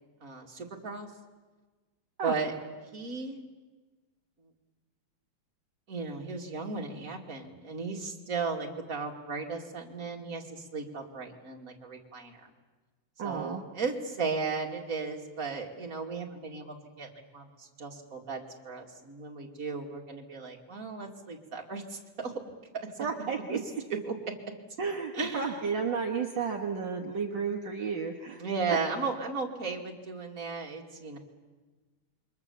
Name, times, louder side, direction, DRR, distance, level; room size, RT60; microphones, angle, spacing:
voice 1, 0.2-1.1 2.2-2.5 2.9-3.4 5.9-12.5 13.2-22.3 24.0-24.1 25.1-25.6 28.4-31.2, right 4 dB, 40° right, 1 dB, 2.9 m, -35 dB
voice 2, 13.2-13.6 23.0-23.6 24.8-28.4, right 5 dB, 60° right, 2 dB, 2.2 m, -32 dB
28.5 x 24.0 x 7.2 m, 1.3 s
omnidirectional pair, 2.3 m